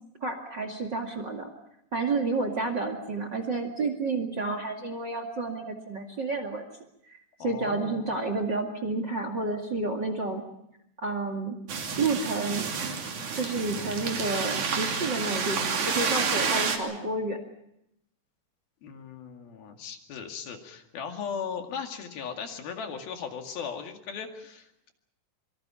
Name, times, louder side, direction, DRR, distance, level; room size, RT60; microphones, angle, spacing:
voice 1, 0.2-1.5 1.9-6.7 7.1-10.4 11.0-11.6 12.0-12.7 13.3-17.4, right 3 dB, 35° right, 7 dB, 2.3 m, -30 dB
voice 2, 7.4-8.1 18.8-24.9, left 6 dB, 65° left, 4 dB, 3.9 m, -37 dB
sound 1, 11.7-16.8, right 5 dB, 50° right, 3.9 m, -29 dB
26.0 x 24.5 x 5.7 m, 0.80 s
omnidirectional pair, 4.7 m